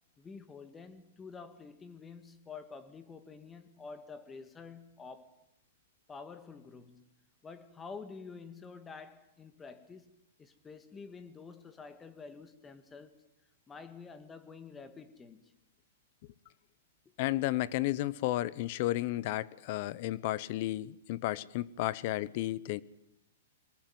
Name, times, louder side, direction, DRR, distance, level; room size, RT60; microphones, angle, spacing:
voice 1, 0.2-5.4 6.1-7.2 7.4-13.2 13.7-15.5, left 5 dB, 15° left, 1.8 m, -49 dB
voice 2, 17.2-22.8, left 16 dB, 45° left, 0.9 m, -33 dB
24.0 x 19.5 x 9.3 m
hypercardioid pair, 145°, 0 cm